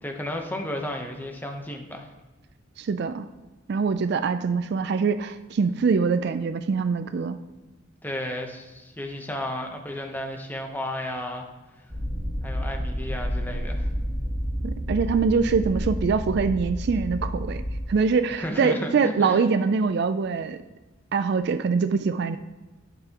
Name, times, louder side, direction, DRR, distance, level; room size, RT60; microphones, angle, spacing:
voice 1, 0.0-2.1 8.0-11.4 12.4-13.9 18.4-19.4 20.4-20.5, left 1 dB, 10° left, 2 dB, 0.9 m, -33 dB
voice 2, 2.8-3.3 3.7-7.4 14.6-17.6 17.9-20.6 21.1-22.4, right 5 dB, 55° right, 11 dB, 0.3 m, -24 dB
sound 1, 11.9-17.8, equal, 20° right, 1.6 m, -30 dB
11.0 x 6.8 x 2.9 m, 1.2 s
head